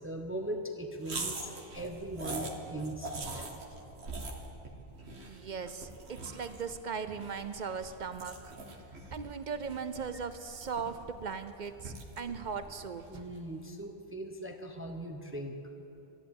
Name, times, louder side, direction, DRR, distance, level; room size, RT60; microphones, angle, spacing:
voice 1, 0.0-3.6 13.1-15.6, right 1 dB, 15° right, 4 dB, 0.7 m, -40 dB
sound 1, 1.0-13.5, right 2 dB, 80° right, 1.6 m, -44 dB
voice 2, 5.2-8.5 9.1-13.3, right 6 dB, 50° right, 10 dB, 0.7 m, -38 dB
13.0 x 11.0 x 8.7 m, 2.9 s
omnidirectional pair, 1.1 m